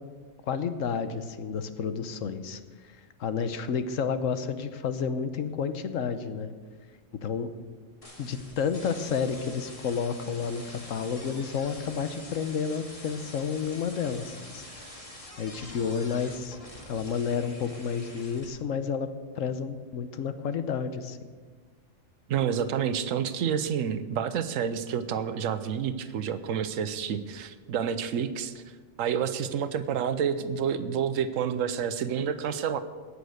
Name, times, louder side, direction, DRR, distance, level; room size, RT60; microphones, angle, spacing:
voice 1, 0.4-6.5 7.2-7.5 8.2-14.7 15.4-16.6 16.9-19.1 19.3-21.2, left 6 dB, 80° left, 11 dB, 1.2 m, -31 dB
sound 1, 8.0-18.5, left 1 dB, 25° left, 2.1 m, -46 dB
voice 2, 22.3-28.6 29.0-32.8, right 8 dB, 85° right, 12 dB, 1.1 m, -29 dB
17.5 x 6.7 x 6.5 m, 1.5 s
omnidirectional pair, 1.3 m